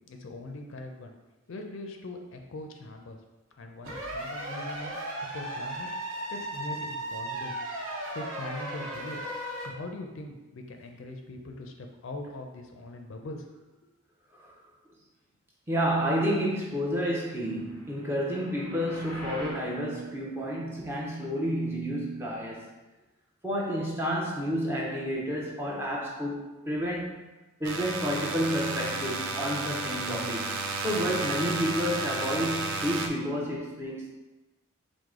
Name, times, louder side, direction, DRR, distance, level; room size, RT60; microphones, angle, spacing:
voice 1, 0.1-1.1 1.5-3.2 3.6-5.0 5.3-5.9 6.3-7.5 8.1-9.2 9.6-13.4, left 2 dB, 60° left, 3 dB, 0.4 m, -41 dB
sound 1, 3.8-9.7, right 1 dB, 75° right, 0.9 m, -36 dB
voice 2, 15.7-22.7 23.4-27.2 27.6-30.4 30.8-34.1, equal, 10° right, -4 dB, 0.6 m, -30 dB
sound 2, 17.4-19.7, equal, 40° right, 1.3 m, -44 dB
sound 3, 27.6-33.1, right 3 dB, 55° right, 0.4 m, -32 dB
4.7 x 2.1 x 3.6 m, 1.1 s
head